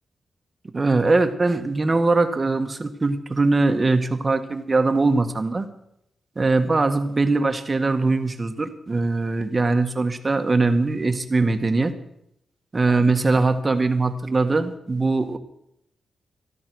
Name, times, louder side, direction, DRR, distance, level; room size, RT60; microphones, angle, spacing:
voice 1, 0.7-5.7 6.3-11.9 12.7-15.4, right 3 dB, 30° right, 7 dB, 1.6 m, -21 dB
13.5 x 12.5 x 6.4 m, 0.77 s
cardioid pair, 75°, 0 cm